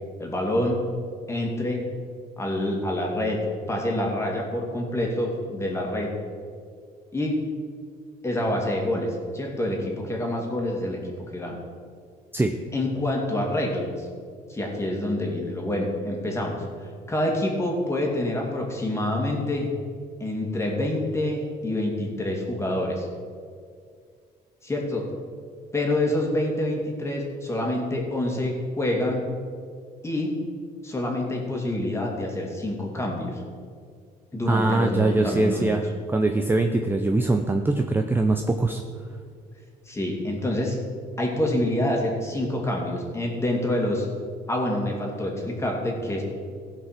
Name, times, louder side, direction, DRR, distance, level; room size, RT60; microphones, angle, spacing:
voice 1, 0.2-0.8 1.3-1.8 2.4-3.4 3.7-6.1 7.1-7.4 8.2-11.0 11.3-11.6 12.7-14.1 14.5-19.7 20.2-23.1 24.6-25.1 25.7-29.2 30.0-30.4 30.8-33.4 34.3-35.6 39.9-40.8 41.2-44.1 44.5-46.2, left 1 dB, 15° left, -1 dB, 2.5 m, -27 dB
voice 2, 34.5-35.8 36.1-38.8, right 2 dB, 10° right, 5 dB, 0.6 m, -22 dB
16.0 x 5.5 x 5.9 m, 2.1 s
cardioid pair, 110°, 17 cm